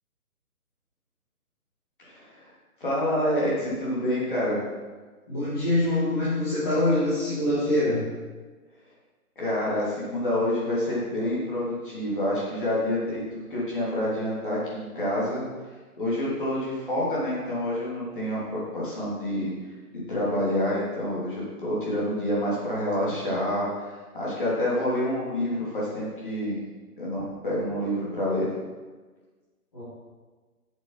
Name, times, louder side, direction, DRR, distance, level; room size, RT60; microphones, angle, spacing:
voice 1, 2.0-2.4 2.8-4.6 9.4-13.2 13.5-15.4 16.0-19.5 20.1-26.6 27.0-28.5, left 1 dB, 35° left, -7 dB, 2.9 m, -27 dB
voice 2, 5.3-8.1 29.7-29.8, left 1 dB, 15° left, -13 dB, 1.7 m, -24 dB
8.3 x 7.4 x 4.6 m, 1.4 s
hypercardioid pair, 180°, 46 cm